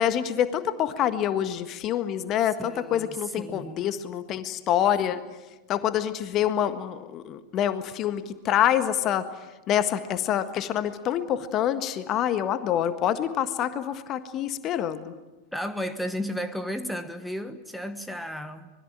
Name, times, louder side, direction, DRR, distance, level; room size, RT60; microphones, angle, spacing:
voice 1, 0.0-5.3 5.7-9.3 9.7-15.1, left 10 dB, 35° left, 1.5 m, -26 dB
voice 2, 2.6-3.9 15.5-18.7, equal, ahead, 1.3 m, -34 dB
25.5 x 21.5 x 9.0 m
figure-of-eight pair, 90°, 0 cm